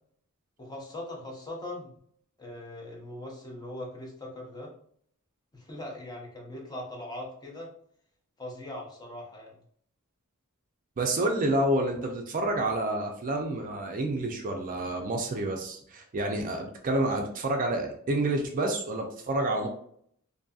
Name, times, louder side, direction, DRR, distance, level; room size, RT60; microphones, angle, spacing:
voice 1, 0.6-1.9 2.4-4.7 5.5-7.7 8.4-9.6, left 1 dB, 20° left, -1 dB, 0.6 m, -40 dB
voice 2, 11.0-19.7, right 1 dB, 40° right, 3 dB, 0.4 m, -29 dB
2.6 x 2.6 x 2.3 m, 0.63 s
head